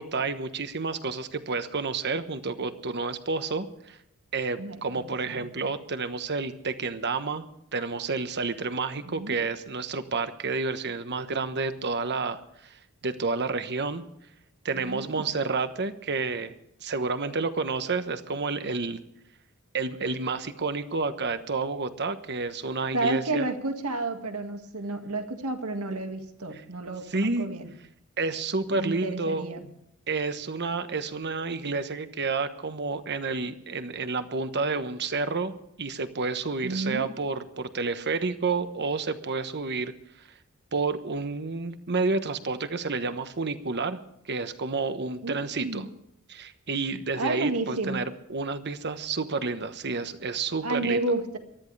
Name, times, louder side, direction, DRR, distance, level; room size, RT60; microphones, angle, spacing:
voice 1, 0.0-4.0 4.3-7.4 7.7-14.0 14.6-16.5 16.8-19.0 19.7-23.4 27.1-27.5 28.2-29.5 30.1-39.9 40.7-44.0 44.2-45.8 46.3-51.0, right 4 dB, 50° right, 10 dB, 1.2 m, -30 dB
voice 2, 4.6-5.5 9.0-9.4 14.7-15.3 22.9-27.7 28.7-29.6 36.6-37.1 45.2-45.9 47.2-48.1 50.6-51.4, right 2 dB, 85° right, 6 dB, 2.0 m, -31 dB
23.0 x 13.5 x 3.4 m, 0.77 s
head